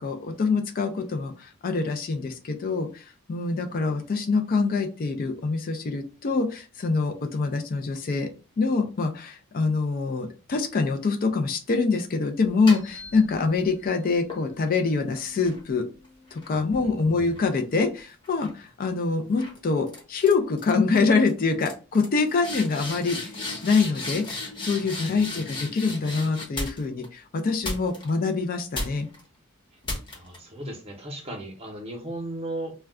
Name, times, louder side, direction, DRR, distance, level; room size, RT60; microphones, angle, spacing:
voice 1, 0.0-8.3 8.6-15.9 16.3-23.3 23.6-29.1, left 4 dB, 40° left, 6 dB, 0.4 m, -25 dB
sound 1, 12.4-13.7 14.3-17.9 18.2-18.6 19.4-19.6 19.9-20.3 20.6-21.0 21.3-21.4 21.6-27.0 27.6-28.3 28.7-29.2 29.8-30.4, left 2 dB, 20° left, 0.8 m, -36 dB
voice 2, 16.5-16.9 25.1-25.2 30.1-32.7, right 1 dB, 25° right, 2 dB, 0.7 m, -36 dB
2.3 x 2.2 x 3.5 m, 0.35 s
head